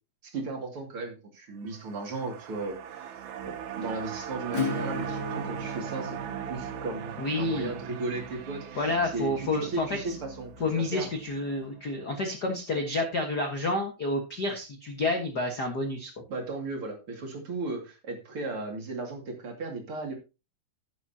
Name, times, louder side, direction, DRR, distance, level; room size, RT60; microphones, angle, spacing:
voice 1, 0.3-3.1 3.4-6.2 6.5-11.1 16.3-20.1, right 3 dB, 40° right, 1 dB, 2.8 m, -36 dB
sound 1, 1.6-12.0 12.4-12.5, right 8 dB, 80° right, 3.1 m, -40 dB
Acoustic guitar / Strum, 4.5-10.0, left 2 dB, 35° left, 2.9 m, -37 dB
voice 2, 7.2-7.7 8.7-9.9 10.6-16.1, left 2 dB, 65° left, 3 dB, 1.0 m, -29 dB
11.5 x 10.5 x 2.8 m, 0.29 s
omnidirectional pair, 4.3 m